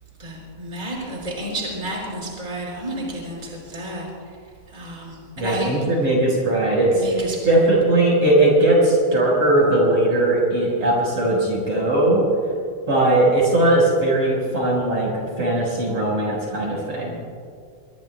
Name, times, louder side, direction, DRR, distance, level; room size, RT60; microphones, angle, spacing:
voice 1, 0.2-4.1 4.7-5.7 6.9-7.4, right 1 dB, 10° right, -3 dB, 4.9 m, -31 dB
voice 2, 5.4-12.2 12.9-17.2, right 1 dB, 45° right, -4 dB, 5.7 m, -19 dB
26.0 x 23.0 x 2.2 m, 2.3 s
omnidirectional pair, 3.9 m